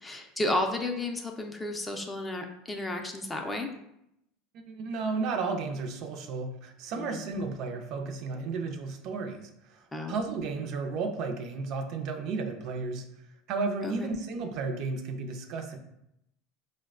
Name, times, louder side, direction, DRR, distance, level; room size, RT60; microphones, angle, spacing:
voice 1, 0.0-3.7 6.9-7.2 9.9-10.1 13.8-14.1, left 2 dB, 15° left, 3 dB, 0.4 m, -32 dB
voice 2, 4.7-13.1 13.5-15.8, right 4 dB, 55° right, 5 dB, 0.4 m, -33 dB
4.4 x 2.1 x 2.4 m, 0.80 s
supercardioid pair, 105°, 0 cm